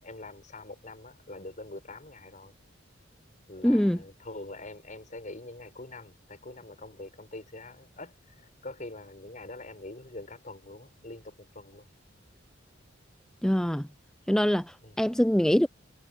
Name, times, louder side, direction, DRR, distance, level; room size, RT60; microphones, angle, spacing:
voice 1, 0.0-2.5 3.5-11.9 14.8-14.9, left 2 dB, 40° left, 6.7 m, -44 dB
voice 2, 3.6-4.0 13.4-13.9 14.3-15.7, equal, 5° left, 0.5 m, -24 dB
head